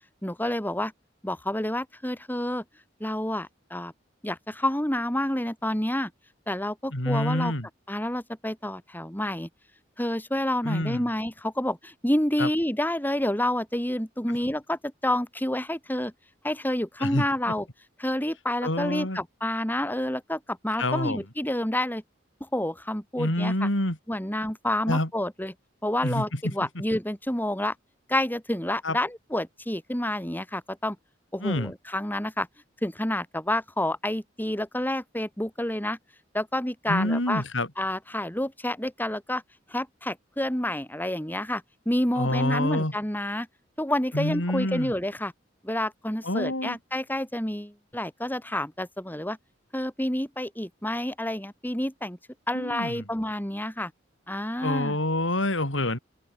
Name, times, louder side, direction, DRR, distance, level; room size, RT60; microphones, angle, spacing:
voice 1, 0.2-0.9 1.2-2.6 3.0-3.9 4.2-6.1 6.5-7.5 7.9-9.5 10.0-16.1 16.4-17.7 18.0-22.0 22.4-23.7 24.1-25.5 25.8-27.7 28.1-31.0 31.3-32.5 32.8-36.0 36.3-37.4 37.8-39.4 39.7-43.5 43.8-45.3 45.6-49.4 49.7-52.2 52.5-53.9 54.3-55.0, left 1 dB, 10° left, 6.0 m, -29 dB
voice 2, 6.9-7.7 10.6-11.1 12.4-12.5 17.0-17.3 18.6-19.2 20.8-21.2 23.2-24.0 24.9-25.1 26.0-26.5 28.8-29.0 31.4-31.7 36.9-37.7 42.1-42.9 44.1-44.9 46.2-46.8 52.5-53.0 54.6-56.0, left 1 dB, 80° left, 6.7 m, -27 dB
open air
head